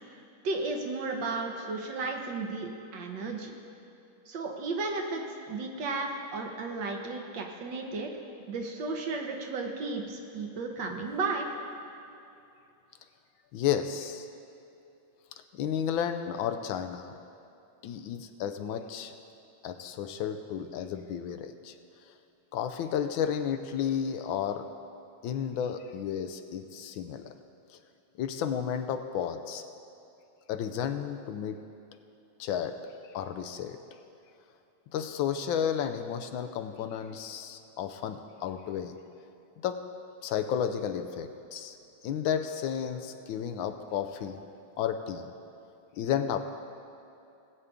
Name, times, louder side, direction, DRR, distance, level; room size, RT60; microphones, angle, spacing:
voice 1, 0.4-3.5 4.3-8.1 8.5-11.5, right 3 dB, 65° right, 2 dB, 1.6 m, -34 dB
voice 2, 13.5-14.3 15.5-17.1 17.8-19.1 19.6-21.7 22.5-24.7 25.2-27.3 28.2-29.6 30.5-31.6 32.4-32.8 33.1-33.8 34.9-39.0 39.6-39.9 40.2-41.8 42.0-44.4 44.8-45.3 46.0-46.4, left 8 dB, 80° left, 8 dB, 1.3 m, -32 dB
19.0 x 8.2 x 3.6 m, 2.8 s
omnidirectional pair, 2.2 m